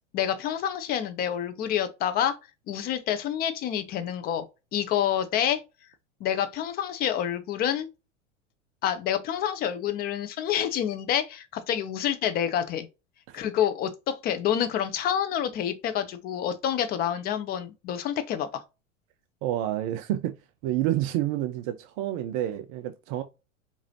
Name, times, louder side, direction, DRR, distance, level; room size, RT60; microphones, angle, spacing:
voice 1, 0.1-2.4 2.7-4.5 4.7-5.6 6.2-7.9 8.8-12.9 13.3-18.6, left 10 dB, 25° left, 0.5 m, -28 dB
voice 2, 19.4-20.4 20.6-23.2, right 13 dB, 30° right, 0.4 m, -29 dB
4.8 x 2.6 x 2.6 m
figure-of-eight pair, 90°, 38 cm